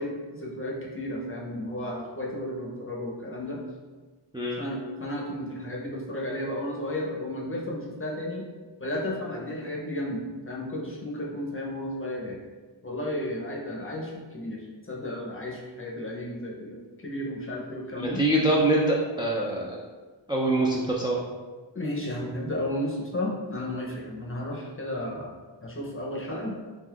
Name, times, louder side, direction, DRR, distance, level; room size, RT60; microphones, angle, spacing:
voice 1, 0.0-3.6 4.6-8.5 8.8-12.4 12.8-18.2 21.7-25.3 25.6-26.6, left 1 dB, 25° left, -3 dB, 0.7 m, -33 dB
voice 2, 18.0-19.8 20.3-21.2, right 1 dB, 10° right, -4 dB, 0.3 m, -24 dB
3.5 x 2.5 x 2.4 m, 1.4 s
wide cardioid pair, 45°, 49 cm